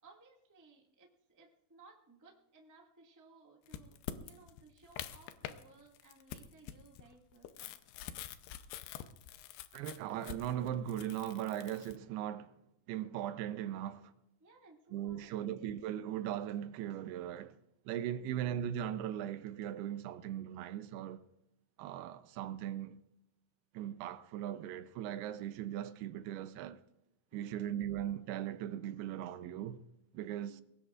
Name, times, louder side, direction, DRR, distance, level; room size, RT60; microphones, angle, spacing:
voice 1, 0.0-7.9 14.4-15.8 27.3-27.7 30.4-30.6, right 3 dB, 30° right, 0.3 m, -61 dB
sound 1, 3.7-5.6 6.0-12.0, left 11 dB, 90° left, 2.9 m, -46 dB
voice 2, 9.7-12.5 12.9-14.1 14.9-17.6 17.9-21.3 21.8-23.0 23.7-26.8 27.3-29.8 30.1-30.6, right 11 dB, 80° right, 2.6 m, -39 dB
23.0 x 19.0 x 2.5 m
omnidirectional pair, 4.6 m